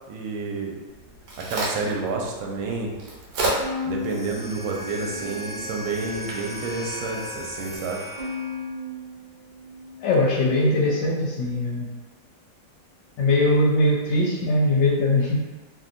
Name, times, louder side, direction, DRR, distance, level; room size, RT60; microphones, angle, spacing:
voice 1, 0.1-0.8 1.4-2.9 3.8-8.1, right 3 dB, 85° right, -1 dB, 1.4 m, -29 dB
Crack, 0.9-7.8, right 2 dB, 65° right, 1.3 m, -34 dB
Bowed string instrument, 3.6-6.0 6.4-7.2 8.2-10.7, left 4 dB, 35° right, 0.6 m, -37 dB
sound 1, 4.0-8.8, left 1 dB, 30° left, 1.1 m, -37 dB
voice 2, 10.0-11.9 13.2-15.4, left 1 dB, 75° left, -4 dB, 1.3 m, -21 dB
3.0 x 2.6 x 2.4 m, 1.3 s
omnidirectional pair, 2.1 m